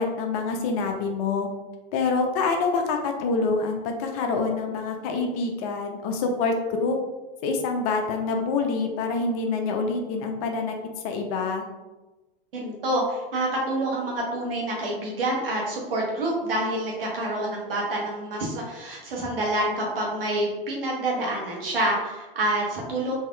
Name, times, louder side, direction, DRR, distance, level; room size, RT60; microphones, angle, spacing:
voice 1, 0.0-1.5 1.9-6.5 6.8-7.0 7.4-10.8 11.0-11.6, left 4 dB, 40° left, 4 dB, 0.5 m, -26 dB
voice 2, 12.5-23.2, right 1 dB, 70° right, -3 dB, 1.1 m, -27 dB
4.1 x 2.7 x 2.2 m, 1.1 s
figure-of-eight pair, 90°, 29 cm